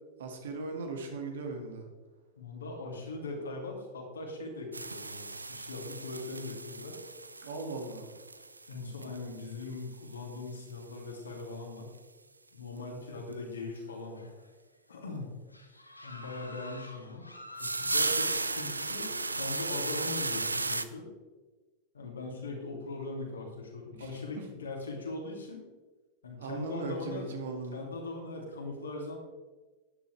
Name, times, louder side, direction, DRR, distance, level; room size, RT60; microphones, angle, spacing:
voice 1, 0.2-1.8 7.4-8.1 12.8-13.0 23.9-24.1 24.4-24.5 26.4-27.8, right 3 dB, 60° right, 3 dB, 2.1 m, -38 dB
voice 2, 2.4-7.0 8.7-11.9 12.5-14.3 14.9-15.3 16.0-17.2 17.6-21.1 21.9-25.7 26.2-27.3 27.7-29.2, left 3 dB, 70° left, 0 dB, 2.8 m, -40 dB
sound 1, 4.7-9.8 10.1-10.2 10.6-10.7 10.8-10.9 11.4-11.5 13.3-13.4 17.6-20.8, right 3 dB, 80° right, 0.5 m, -34 dB
sound 2, 13.8-14.6 14.9-15.1 15.5-20.4, left 1 dB, 85° left, 1.1 m, -49 dB
12.5 x 10.0 x 3.4 m, 1.3 s
figure-of-eight pair, 90°, 0 cm